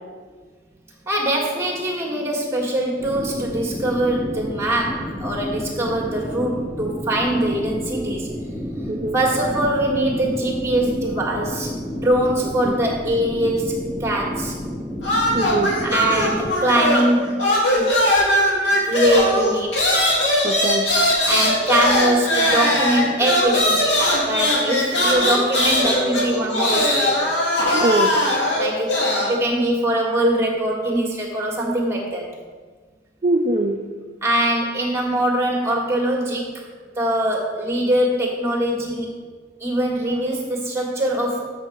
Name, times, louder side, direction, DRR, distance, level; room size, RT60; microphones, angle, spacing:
voice 1, 1.1-8.3 9.1-11.7 12.0-14.5 15.8-17.9 18.8-19.7 21.2-23.8 24.2-27.2 28.5-29.0 29.3-32.4 34.2-36.5 37.0-39.1 39.6-41.5, right 1 dB, 15° right, -1 dB, 1.6 m, -22 dB
sound 1, 3.0-16.5, equal, 5° left, 0.9 m, -30 dB
sound 2, 15.0-17.1 17.4-29.3, left 1 dB, 80° left, 2.1 m, -20 dB
voice 2, 15.3-15.7 20.4-20.9 27.7-28.1 33.2-33.8, right 2 dB, 35° right, 3 dB, 0.4 m, -22 dB
7.7 x 6.2 x 4.6 m, 1.5 s
head